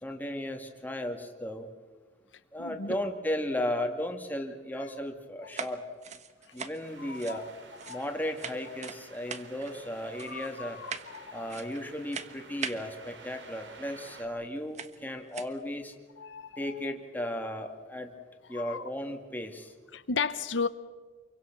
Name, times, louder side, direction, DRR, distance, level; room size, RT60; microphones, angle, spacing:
voice 1, 0.0-1.7 2.5-5.8 6.5-7.5 7.9-10.8 11.3-15.9 16.6-18.1 18.5-19.7, left 1 dB, 10° left, 2.4 m, -35 dB
voice 2, 2.6-3.0 6.5-6.6 7.0-7.4 7.9-8.0 10.3-11.5 16.2-16.6 18.5-18.8 19.9-20.7, left 5 dB, 80° left, 1.0 m, -35 dB
sound 1, 5.5-8.1 8.4-9.0 9.3-9.8 10.2-10.5 10.9-11.2 11.5-11.9 12.1-12.8 14.0-14.1 14.7-15.0 15.3-15.6, right 6 dB, 40° right, 1.4 m, -40 dB
sound 2, 6.8-14.3, right 3 dB, 70° right, 3.3 m, -51 dB
28.0 x 23.5 x 6.1 m
head